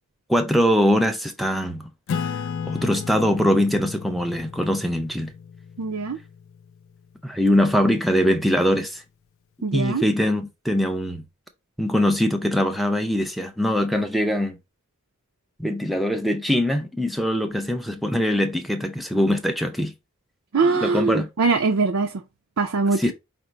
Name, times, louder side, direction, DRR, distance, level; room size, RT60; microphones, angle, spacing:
voice 1, 0.3-5.3 7.2-9.0 9.7-11.2 11.8-14.6 15.6-19.9 20.6-21.3 23.0-23.1, equal, ahead, 0.5 m, -22 dB
Acoustic guitar / Strum, 2.1-7.1, left 6 dB, 60° left, 0.3 m, -34 dB
voice 2, 5.8-6.2 9.6-10.0 20.5-22.1 22.6-23.0, right 4 dB, 70° right, 0.5 m, -22 dB
5.1 x 2.0 x 4.4 m
head